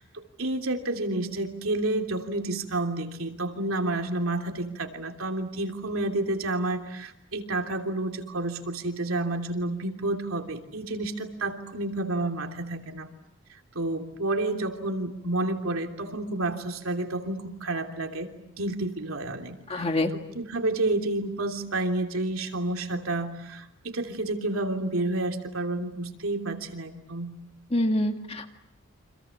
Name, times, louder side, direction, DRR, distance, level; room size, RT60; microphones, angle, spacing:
voice 1, 0.0-13.1 13.7-19.9 20.1-27.3, right 2 dB, 85° right, 4 dB, 3.1 m, -30 dB
voice 2, 19.7-20.1 27.7-28.5, left 1 dB, 30° left, 5 dB, 2.0 m, -25 dB
29.5 x 26.5 x 7.3 m, 0.84 s
head